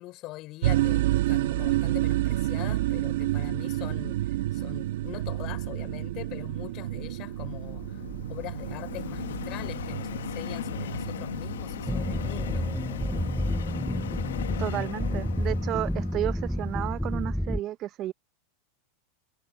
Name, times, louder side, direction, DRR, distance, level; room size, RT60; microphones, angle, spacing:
voice 1, 0.0-8.0 8.3-12.7, left 19 dB, 50° left, 5.6 m, -42 dB
sound 1, 0.6-14.0, right 15 dB, 75° right, 1.1 m, -30 dB
Subway metro underground, 6.0-17.3, left 11 dB, 85° left, 1.3 m, -38 dB
sound 2, 11.9-17.6, equal, ahead, 0.6 m, -30 dB
voice 2, 14.6-18.1, right 14 dB, 45° right, 0.6 m, -32 dB
hypercardioid pair, 110°, 0 cm